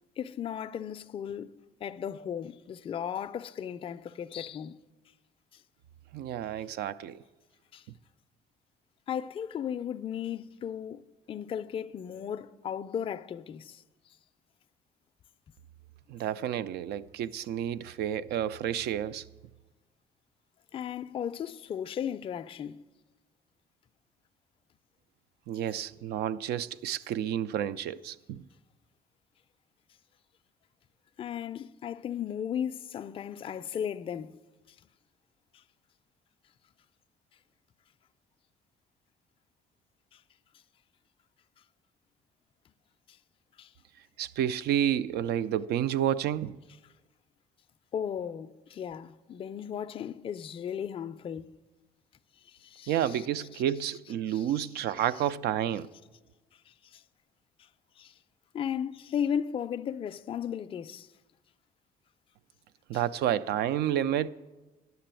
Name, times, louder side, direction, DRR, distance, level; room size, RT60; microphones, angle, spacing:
voice 1, 0.2-4.8 7.7-7.8 9.1-11.0 11.3-13.8 20.7-22.8 31.2-34.4 40.1-40.2 43.6-43.7 47.9-51.6 52.5-53.3 53.5-53.6 54.3-54.5 56.8-57.0 58.0-58.1 58.5-61.1 62.9-63.0, left 8 dB, 35° left, 0.4 m, -35 dB
voice 2, 6.1-7.2 16.1-19.3 25.5-28.4 44.2-46.6 52.9-55.9 62.9-64.3, right 10 dB, 75° right, 0.4 m, -30 dB
11.0 x 6.8 x 8.9 m
cardioid pair, 110°, 17 cm